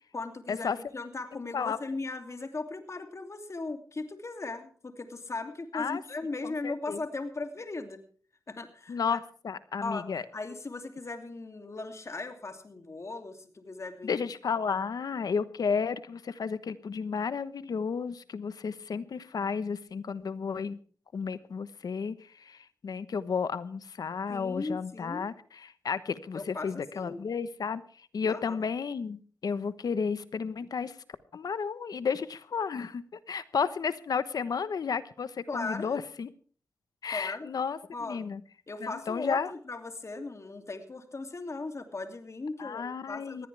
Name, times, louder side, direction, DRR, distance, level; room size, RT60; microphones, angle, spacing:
voice 1, 0.1-8.0 8.5-9.2 9.8-14.2 24.3-25.3 26.3-27.2 28.3-28.6 35.5-36.0 37.1-37.5 37.9-38.2 38.7-43.5, left 3 dB, 45° left, 6 dB, 2.8 m, -38 dB
voice 2, 6.4-7.0 8.9-10.2 14.0-20.8 21.1-31.0 31.3-36.3 37.0-38.4 38.8-39.5 42.6-43.5, left 6 dB, 75° left, 14 dB, 1.1 m, -32 dB
20.0 x 16.0 x 3.4 m, 0.43 s
cardioid pair, 55°, 7 cm